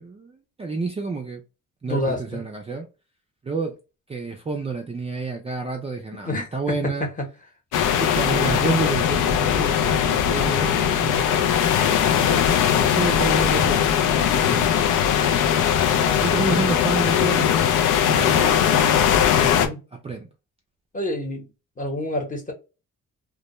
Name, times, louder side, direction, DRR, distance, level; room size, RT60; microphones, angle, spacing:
voice 1, 0.0-1.4 1.8-2.9 3.4-3.7 4.1-7.1 8.0-11.5 11.9-15.6 16.2-18.8 19.5-19.7 20.0-20.3, right 4 dB, 20° right, 0.4 m, -30 dB
voice 2, 1.9-2.4 6.2-7.3 15.9-16.5 19.3-19.8 20.9-21.5 21.8-22.5, left 1 dB, 25° left, 0.9 m, -29 dB
sound 1, 7.7-19.7, left 9 dB, 85° left, 0.5 m, -20 dB
2.2 x 2.1 x 2.9 m
cardioid pair, 90°, 30 cm